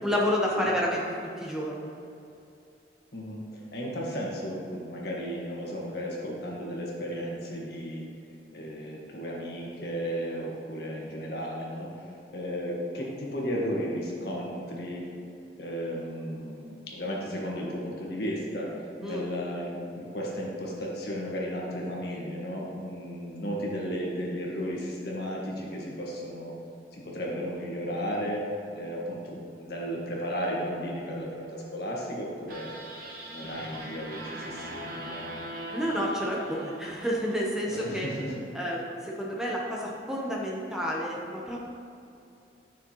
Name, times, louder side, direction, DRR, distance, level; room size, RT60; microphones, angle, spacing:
voice 1, 0.0-1.0 1.4-1.9 19.0-19.3 35.7-38.1 38.5-41.7, equal, 5° right, -4 dB, 0.8 m, -30 dB
voice 2, 3.1-8.0 8.5-15.1 15.6-18.7 19.0-26.5 26.9-28.4 28.7-32.8 33.3-35.4 37.7-38.3, equal, 60° left, -3 dB, 1.6 m, -34 dB
sound 1, 32.5-37.8, right 1 dB, 55° right, 0.9 m, -40 dB
9.8 x 6.1 x 3.0 m, 2.6 s
head